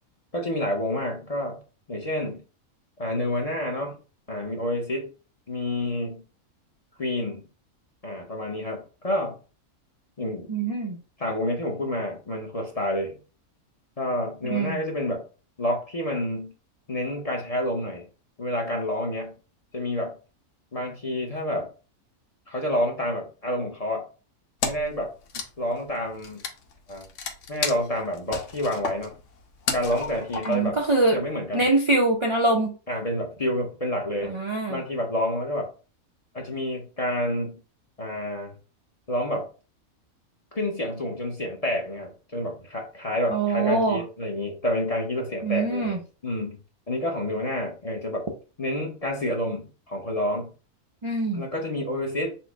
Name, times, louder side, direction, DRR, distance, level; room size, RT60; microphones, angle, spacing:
voice 1, 0.3-1.6 1.9-2.4 3.0-4.0 4.3-5.1 5.5-6.2 7.0-7.4 8.0-9.4 10.2-10.5 11.2-13.2 14.0-15.2 15.6-16.5 16.9-18.1 18.4-19.3 19.7-20.1 20.7-21.7 22.5-24.1 24.6-25.1 25.6-26.4 26.9-27.0 27.5-29.1 29.7-30.8 31.1-31.7 32.9-34.3 34.7-35.7 36.3-37.6 38.0-38.5 39.1-39.5 40.5-46.6 46.9-48.3 48.6-50.5 51.3-52.3, left 1 dB, 35° left, 1 dB, 0.7 m, -28 dB
voice 2, 10.5-11.0 14.4-14.8 30.5-31.2 31.5-32.7 34.2-34.8 43.3-44.0 45.4-46.0 51.0-51.4, right 2 dB, 55° right, 1 dB, 0.3 m, -23 dB
Wood, 24.6-25.0 25.2-30.8, left 5 dB, 65° left, 1.0 m, -32 dB
4.3 x 2.1 x 4.6 m, 0.34 s
omnidirectional pair, 1.5 m